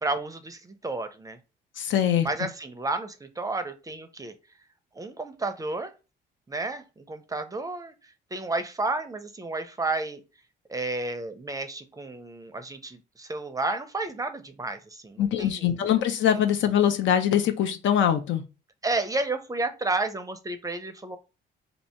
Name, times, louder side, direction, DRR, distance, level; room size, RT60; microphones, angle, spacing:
voice 1, 0.0-1.4 2.2-4.3 4.9-5.9 6.5-10.2 10.7-15.8 18.8-21.2, right 2 dB, 15° right, 0.5 m, -31 dB
voice 2, 1.8-2.3 15.2-18.4, left 9 dB, 75° left, 0.6 m, -23 dB
2.7 x 2.7 x 4.3 m
cardioid pair, 90°, 20 cm